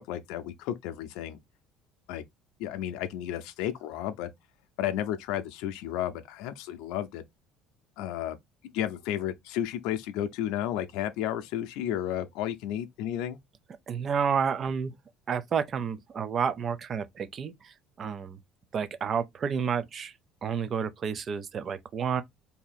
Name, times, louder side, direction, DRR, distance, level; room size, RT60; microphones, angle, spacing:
voice 1, 0.0-1.4 2.1-2.2 2.6-4.3 4.8-7.2 8.0-8.4 8.7-13.4, left 11 dB, 80° left, 0.5 m, -32 dB
voice 2, 13.9-14.9 15.3-18.4 18.7-20.1 20.4-22.2, right 6 dB, 30° right, 0.4 m, -30 dB
2.7 x 2.7 x 4.0 m
cardioid pair, 155°, 0 cm